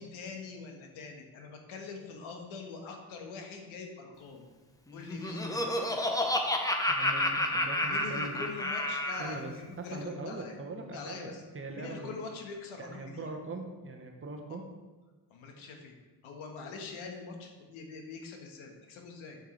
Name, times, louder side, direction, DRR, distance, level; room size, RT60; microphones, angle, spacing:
voice 1, 0.0-4.5 4.9-5.6 7.9-10.6 10.9-11.4 11.7-13.2 15.3-15.9 16.2-19.4, left 4 dB, 75° left, 3 dB, 1.4 m, -43 dB
Laughter, 4.9-9.4, left 1 dB, 10° left, 0.7 m, -30 dB
voice 2, 6.9-8.4 9.2-12.1 12.8-14.6, right 3 dB, 25° right, 3 dB, 1.0 m, -41 dB
6.7 x 6.5 x 3.2 m, 1.3 s
supercardioid pair, 85°, 48 cm